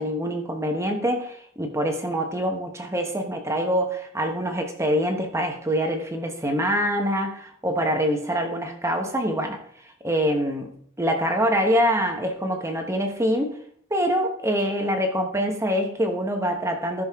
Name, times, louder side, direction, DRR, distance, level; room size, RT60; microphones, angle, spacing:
voice 1, 0.0-9.6 10.0-13.5 13.9-17.0, equal, 15° right, 4 dB, 1.2 m, -25 dB
14.5 x 6.4 x 3.7 m, 0.64 s
head